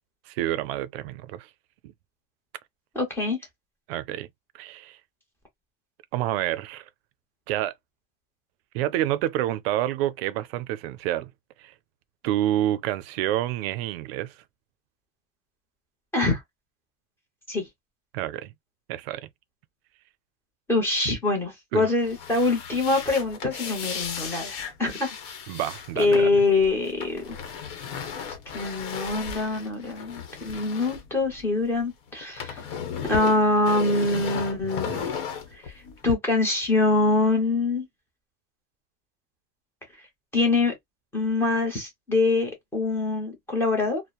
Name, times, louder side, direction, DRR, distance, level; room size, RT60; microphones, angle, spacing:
voice 1, 0.3-1.5 1.8-1.9 3.9-4.3 4.5-5.0 6.1-6.9 7.5-7.7 8.7-11.3 11.6-11.7 12.2-14.4 18.1-18.5 18.9-19.3 21.7-21.9 25.5-26.4 34.9-35.1, right 13 dB, 80° right, 0.4 m, -28 dB
voice 2, 2.9-3.4 16.1-16.4 17.5-17.7 20.7-25.1 26.0-27.2 28.5-32.6 33.1-34.9 35.5-35.7 36.0-37.9 40.3-40.7 41.1-44.0, left 3 dB, 10° left, 0.8 m, -24 dB
sound 1, 22.0-31.8 32.1-36.1, left 7 dB, 60° left, 1.0 m, -35 dB
2.9 x 2.0 x 2.3 m
cardioid pair, 175°, 30 cm